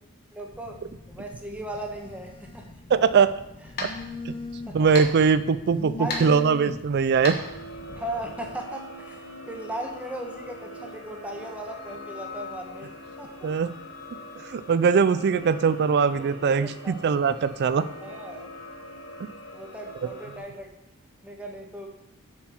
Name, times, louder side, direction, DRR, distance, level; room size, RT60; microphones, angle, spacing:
voice 1, 0.3-0.8 1.1-2.6 4.7-4.8 6.0-6.4 7.9-12.9 13.2-13.5 16.1-17.0 18.0-18.5 19.5-20.7 21.2-22.0, right 1 dB, 5° right, 1 dB, 1.1 m, -37 dB
Telephone, 0.5-8.6, left 2 dB, 25° left, 0.5 m, -42 dB
voice 2, 2.9-3.3 3.8-3.9 4.3-4.4 4.7-7.4 13.4-13.7 14.4-17.9, right 6 dB, 50° right, 13 dB, 0.4 m, -21 dB
sound 1, 3.0-8.3, left 3 dB, 45° left, 1.3 m, -38 dB
sound 2, 7.2-20.4, left 1 dB, 75° left, 2.5 m, -43 dB
8.5 x 5.8 x 4.4 m, 0.92 s
head